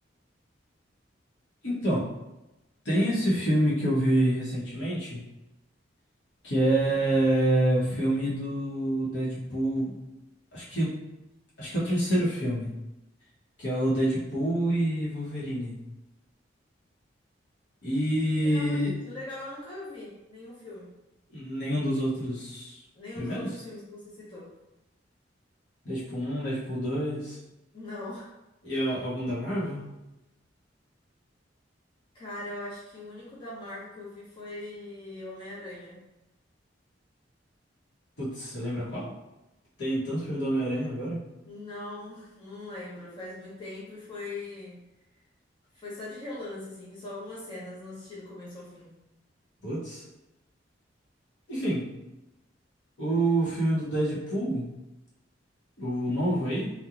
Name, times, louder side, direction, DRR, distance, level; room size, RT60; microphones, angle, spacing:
voice 1, 1.6-2.1 2.8-5.3 6.4-10.0 10.5-11.0 11.6-12.8 13.6-15.9 17.8-19.0 21.3-22.8 23.2-23.5 25.8-27.4 28.6-29.8 38.2-39.1 39.8-41.2 49.6-50.0 51.5-51.9 53.0-54.7 55.8-56.7, right 1 dB, 70° left, -7 dB, 1.0 m, -27 dB
voice 2, 18.4-20.9 22.9-24.5 27.7-28.3 32.1-36.0 41.4-44.8 45.7-48.9, left 2 dB, 25° left, -8 dB, 0.8 m, -41 dB
2.9 x 2.2 x 2.4 m, 0.96 s
head